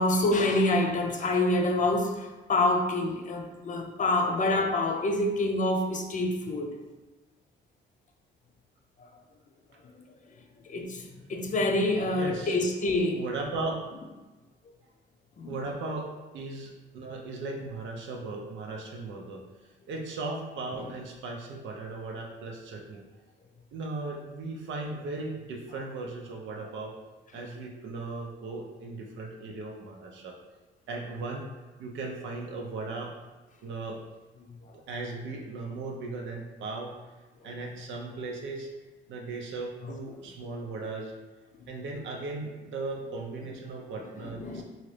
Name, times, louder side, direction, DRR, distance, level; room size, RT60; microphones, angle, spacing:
voice 1, 0.0-6.8 10.6-13.2 15.4-15.5 39.8-39.9 44.4-44.6, left 2 dB, 40° left, 3 dB, 0.5 m, -26 dB
voice 2, 12.1-12.6 13.1-13.8 15.5-19.5 19.9-23.0 23.7-26.9 27.3-30.4 30.9-31.5 31.8-33.1 33.6-34.0 34.9-36.9 37.4-38.7 39.1-41.1 41.7-44.6, right 3 dB, 75° right, 0 dB, 0.5 m, -37 dB
2.9 x 2.5 x 3.2 m, 1.1 s
cardioid pair, 90°, 20 cm